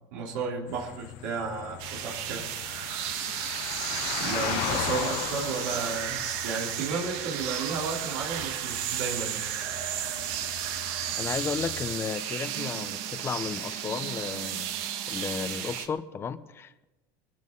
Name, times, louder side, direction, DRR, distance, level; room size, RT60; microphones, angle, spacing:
voice 1, 0.1-2.5 4.2-9.4, right 4 dB, 85° right, -4 dB, 3.9 m, -33 dB
sound 1, 0.7-11.9, left 15 dB, 65° left, 0.8 m, -38 dB
sound 2, 1.8-15.9, right 10 dB, 65° right, 1.8 m, -33 dB
sound 3, 8.3-8.9, right 7 dB, 45° right, 5.6 m, -43 dB
voice 2, 11.2-14.8 15.1-16.8, left 6 dB, 25° left, 11 dB, 1.0 m, -34 dB
23.5 x 14.0 x 4.1 m, 1.0 s
supercardioid pair, 140°, 10 cm